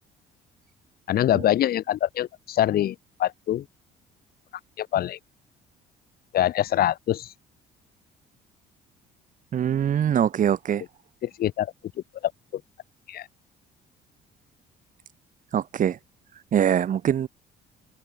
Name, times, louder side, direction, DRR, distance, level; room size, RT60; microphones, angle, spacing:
voice 1, 1.1-3.6 4.8-5.2 6.3-7.3 11.2-11.7 12.5-12.6 13.1-13.3, left 12 dB, 65° left, 6.4 m, -24 dB
voice 2, 9.5-10.8 15.5-16.0 16.5-17.3, right 9 dB, 50° right, 5.7 m, -23 dB
cardioid pair, 110°, 17 cm